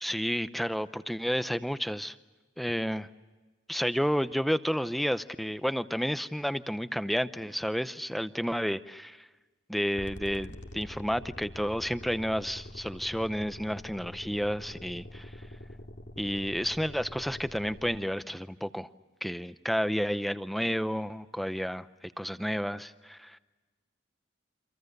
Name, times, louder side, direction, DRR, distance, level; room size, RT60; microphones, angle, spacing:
voice 1, 0.0-2.2 2.6-3.1 3.7-9.3 9.7-15.5 16.2-18.9 19.2-23.4, equal, ahead, 12 dB, 0.7 m, -31 dB
sound 1, 10.0-18.0, left 1 dB, 70° left, 2.3 m, -45 dB
29.5 x 26.0 x 6.7 m, 1.3 s
head